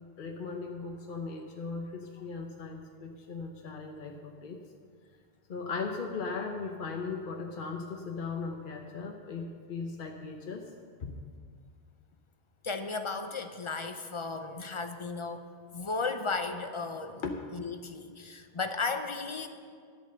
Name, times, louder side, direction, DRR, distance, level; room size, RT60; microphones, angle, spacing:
voice 1, 0.2-4.6 5.5-10.7 11.0-11.1 17.2-17.3, left 4 dB, 55° left, 2 dB, 0.9 m, -38 dB
voice 2, 12.6-15.4 15.7-17.2 17.5-19.5, left 4 dB, 35° left, 7 dB, 0.6 m, -35 dB
11.0 x 8.2 x 6.7 m, 2.1 s
omnidirectional pair, 1.1 m